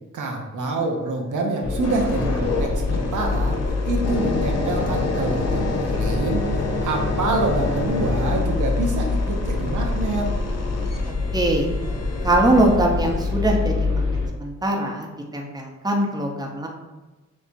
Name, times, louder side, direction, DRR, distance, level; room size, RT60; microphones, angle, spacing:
voice 1, 0.1-3.6 3.9-10.4, right 2 dB, 90° right, 1 dB, 0.7 m, -26 dB
sound 1, 1.6-14.3, left 3 dB, 80° left, 1.0 m, -26 dB
sound 2, 1.8-12.8 13.3-13.5, left 3 dB, 60° left, 0.7 m, -29 dB
voice 2, 11.3-11.7 12.2-14.0 14.4-15.1 15.3-16.7, right 1 dB, 15° right, 0 dB, 0.8 m, -21 dB
6.3 x 2.7 x 2.7 m, 1.2 s
cardioid pair, 75°, 30 cm